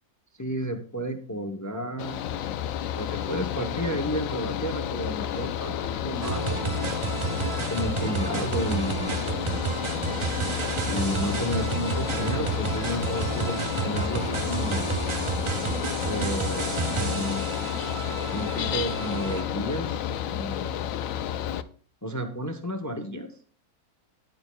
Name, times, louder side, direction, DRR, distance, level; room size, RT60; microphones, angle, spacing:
voice 1, 0.4-2.2 3.0-6.6 7.7-9.1 10.9-14.8 16.1-17.4 18.3-20.8 22.0-23.3, equal, 20° left, 7 dB, 0.6 m, -32 dB
Mechanical fan, 2.0-21.6, left 10 dB, 70° left, 0.9 m, -31 dB
sound 1, 6.2-19.7, right 5 dB, 55° right, 0.3 m, -31 dB
11.5 x 10.5 x 2.3 m, 0.41 s
omnidirectional pair, 1.6 m